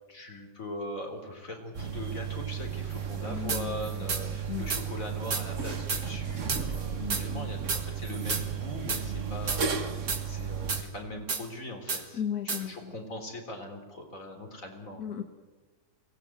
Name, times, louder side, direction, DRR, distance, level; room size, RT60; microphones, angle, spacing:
voice 1, 0.1-10.0 10.3-15.0, left 1 dB, 60° left, 4 dB, 4.1 m, -41 dB
sound 1, 1.7-10.8, right 7 dB, 55° right, 1.9 m, -34 dB
voice 2, 3.3-3.9 4.5-4.7 7.0-7.5 12.2-12.9 15.0-15.2, left 9 dB, 85° left, 6 dB, 1.9 m, -35 dB
sound 2, 3.5-3.6 4.1-4.2 4.7-4.8 5.3-5.4 5.9-6.0 6.5-6.6 7.1-7.2 7.7-7.8 8.3-8.4 8.9-9.0 9.5-9.6 10.1-10.2 10.7-10.8 11.3-11.4 11.9-12.0 12.5-12.6, right 5 dB, 70° right, 2.5 m, -30 dB
24.0 x 18.0 x 9.1 m, 1.3 s
omnidirectional pair, 1.6 m